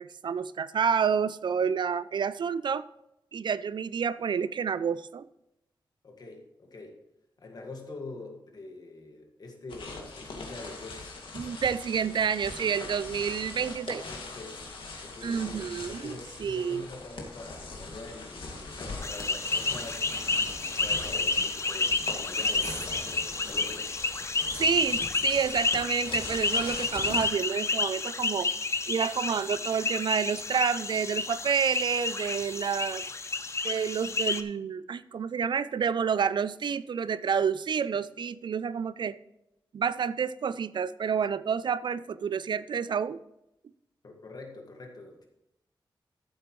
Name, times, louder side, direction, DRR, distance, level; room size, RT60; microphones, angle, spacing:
voice 1, 0.0-2.9 3.3-5.3 11.3-14.0 15.2-16.1 16.4-16.8 24.5-28.5 28.9-33.1 33.6-39.2 39.7-43.2, right 7 dB, 65° right, 16 dB, 0.4 m, -29 dB
voice 2, 6.0-7.0 7.4-11.2 14.1-14.7 15.0-20.1 20.5-23.9 44.0-45.3, left 2 dB, 50° left, 2 dB, 1.8 m, -45 dB
sound 1, 9.7-27.3, left 3 dB, 85° left, 2.1 m, -41 dB
sound 2, 19.0-34.4, left 3 dB, 35° left, 0.6 m, -30 dB
14.0 x 7.9 x 3.1 m, 0.86 s
wide cardioid pair, 155°, 8 cm